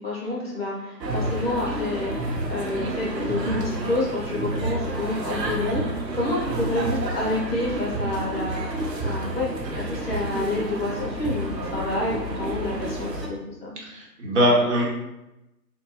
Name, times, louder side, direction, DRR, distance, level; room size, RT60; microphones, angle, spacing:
voice 1, 0.0-8.6 9.0-13.7, left 2 dB, 40° left, -5 dB, 0.8 m, -29 dB
sound 1, 1.0-13.3, right 1 dB, 85° right, 0.8 m, -29 dB
voice 2, 13.8-14.8, equal, 45° right, -4 dB, 1.0 m, -21 dB
3.4 x 2.2 x 3.1 m, 0.96 s
figure-of-eight pair, 140°, 50 cm